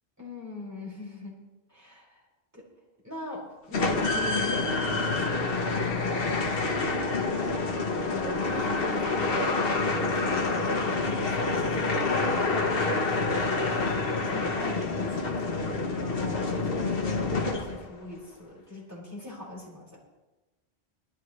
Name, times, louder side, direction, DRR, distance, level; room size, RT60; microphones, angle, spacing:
voice 1, 0.2-1.4 1.7-2.2 2.5-2.7 3.0-20.0, left 1 dB, 15° right, -5 dB, 5.7 m, -40 dB
sound 1, 3.7-18.0, left 3 dB, 60° left, 1.3 m, -27 dB
19.0 x 14.0 x 3.2 m, 1.1 s
omnidirectional pair, 1.1 m